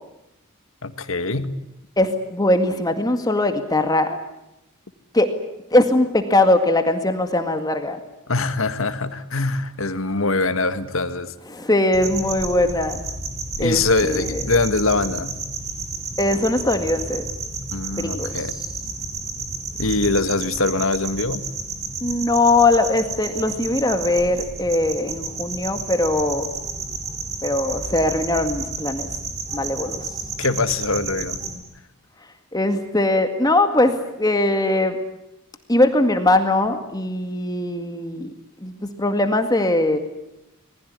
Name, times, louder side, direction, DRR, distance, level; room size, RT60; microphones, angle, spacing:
voice 1, 0.8-1.5 8.3-11.3 13.6-15.3 17.7-18.6 19.8-21.4 30.4-31.4, left 3 dB, 70° left, 11 dB, 1.9 m, -23 dB
voice 2, 2.0-4.2 5.1-5.3 5.7-8.0 11.5-13.0 13.6-14.4 16.2-17.3 18.0-18.3 22.0-26.5 27.4-29.1 29.5-30.1 32.5-35.0 35.7-38.3 38.6-40.0, left 2 dB, 20° left, 6 dB, 2.0 m, -20 dB
sound 1, 11.9-31.5, right 3 dB, 30° right, 4.7 m, -31 dB
27.0 x 20.5 x 9.5 m, 0.90 s
head